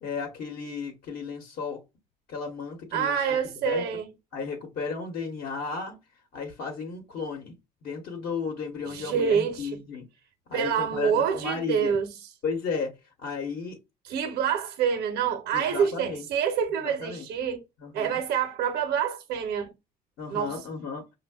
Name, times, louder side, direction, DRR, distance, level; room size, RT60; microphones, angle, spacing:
voice 1, 0.0-1.8 2.3-3.2 3.6-3.8 4.3-6.0 6.3-7.5 7.8-10.1 10.5-11.9 12.4-13.8 15.5-16.2 16.8-17.3 17.8-18.2 20.2-21.1, left 5 dB, 65° left, 1.0 m, -34 dB
voice 2, 2.9-4.1 8.9-9.8 10.5-12.1 14.0-17.6 17.9-19.7 20.3-20.6, right 7 dB, 70° right, 0.6 m, -27 dB
5.4 x 2.1 x 2.2 m
cardioid pair, 110°, 17 cm